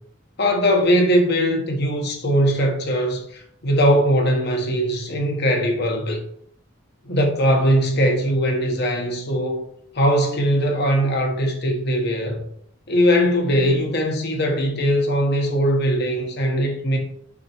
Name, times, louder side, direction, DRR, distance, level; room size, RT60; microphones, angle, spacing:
voice 1, 0.4-6.2 7.0-9.6 9.9-12.4 12.9-17.0, equal, 55° left, 1.4 m, -20 dB
6.5 x 4.3 x 4.5 m
head